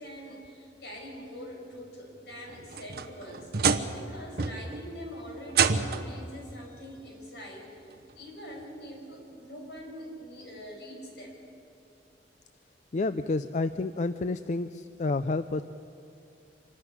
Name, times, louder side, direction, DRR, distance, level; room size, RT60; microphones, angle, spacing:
voice 1, 0.0-3.5 3.9-7.9 8.1-11.4, equal, 70° left, 0 dB, 5.7 m, -44 dB
sound 1, 2.5-4.1 4.4-4.8 5.5-6.2 7.4-7.5 8.1-8.2 9.8-9.9, right 5 dB, 60° right, 1.0 m, -28 dB
voice 2, 12.9-15.6, left 3 dB, 40° left, 11 dB, 0.4 m, -29 dB
25.5 x 13.0 x 9.9 m, 2.7 s
head